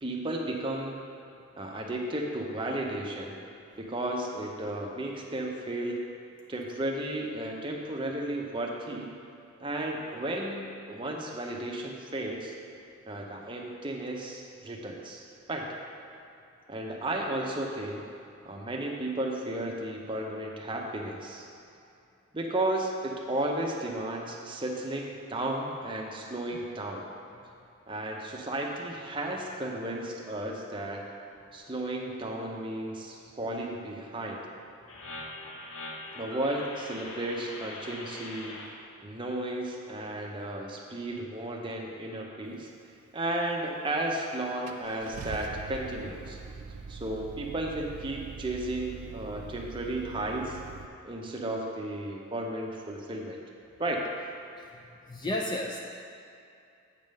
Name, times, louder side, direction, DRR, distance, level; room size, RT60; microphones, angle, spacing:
voice 1, 0.0-1.0 1.6-3.4 3.8-6.0 6.5-9.1 9.6-12.5 13.1-15.2 15.5-15.7 16.7-18.1 18.4-21.5 22.3-27.1 27.9-31.1 31.5-34.4 36.1-38.6 39.0-42.7 43.1-46.4 46.9-50.6 51.0-53.4 53.8-54.1, right 1 dB, 20° right, 0 dB, 0.6 m, -34 dB
sound 1, 34.9-38.7, left 2 dB, 70° left, 0.9 m, -42 dB
Car / Engine starting, 44.0-44.1 44.7-50.9, right 5 dB, 85° right, 0.4 m, -43 dB
voice 2, 55.1-55.8, left 1 dB, 20° left, 0 dB, 0.3 m, -31 dB
8.1 x 3.6 x 6.4 m, 2.6 s
head